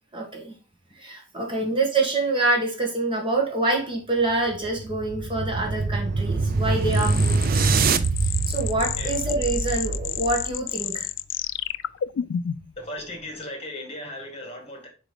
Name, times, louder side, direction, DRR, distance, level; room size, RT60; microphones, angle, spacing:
voice 1, 0.1-0.5 1.0-7.5 8.5-11.1, right 2 dB, 25° right, 1.6 m, -26 dB
sound 1, 4.3-10.7, right 4 dB, 50° right, 0.5 m, -25 dB
sound 2, 6.9-12.8, left 10 dB, 75° left, 0.3 m, -30 dB
voice 2, 12.8-14.9, left 1 dB, 30° left, 2.0 m, -37 dB
4.9 x 4.8 x 5.1 m
head